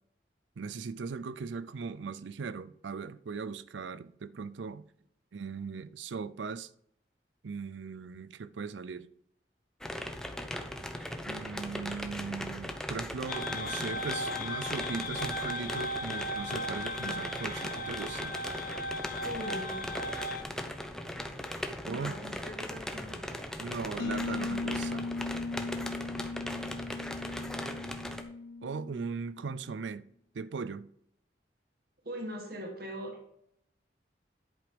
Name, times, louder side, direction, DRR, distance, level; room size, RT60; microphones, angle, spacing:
voice 1, 0.6-4.8 5.3-6.7 7.4-9.1 11.3-18.4 21.9-22.1 23.6-25.1 28.6-30.0 30.3-30.9, right 5 dB, 80° right, 0.5 m, -39 dB
sound 1, 9.8-28.2, left 1 dB, 5° left, 0.7 m, -39 dB
sound 2, 13.3-20.4, left 1 dB, 50° left, 0.7 m, -37 dB
voice 2, 19.2-19.9 21.8-23.4 32.0-33.3, equal, 55° right, 1.5 m, -41 dB
sound 3, 24.0-29.6, left 3 dB, 65° left, 0.3 m, -37 dB
10.5 x 5.0 x 5.2 m
head